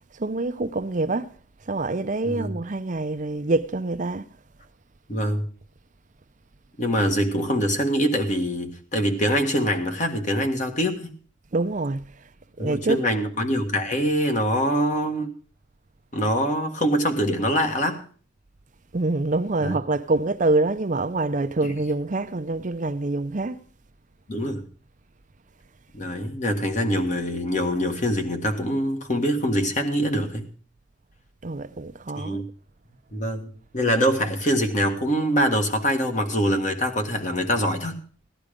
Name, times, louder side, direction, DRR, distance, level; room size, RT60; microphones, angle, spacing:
voice 1, 0.2-1.3 1.7-4.3 11.5-12.0 12.6-13.0 18.9-23.6 31.4-32.4, right 2 dB, 40° right, 0.6 m, -25 dB
voice 2, 2.2-2.5 5.1-5.5 6.8-11.1 12.6-15.3 16.1-18.0 19.6-19.8 21.6-21.8 24.3-24.7 25.9-30.5 32.1-32.5 33.1-38.0, equal, 40° left, 1.7 m, -24 dB
16.0 x 11.0 x 5.1 m
head